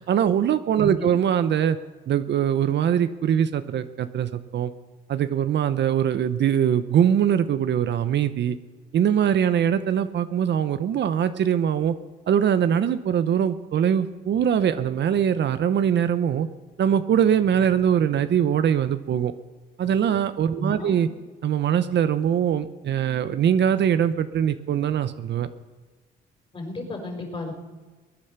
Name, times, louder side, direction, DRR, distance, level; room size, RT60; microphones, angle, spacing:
voice 1, 0.1-1.8 2.1-4.7 5.1-8.6 8.9-11.9 12.3-16.5 16.8-19.3 19.8-21.1 21.4-25.5, right 9 dB, 60° right, 11 dB, 0.9 m, -22 dB
voice 2, 0.8-1.2 20.5-21.0 26.5-27.6, left 2 dB, 25° left, 2 dB, 5.0 m, -34 dB
21.5 x 9.8 x 6.9 m, 1.3 s
cardioid pair, 90°, 20 cm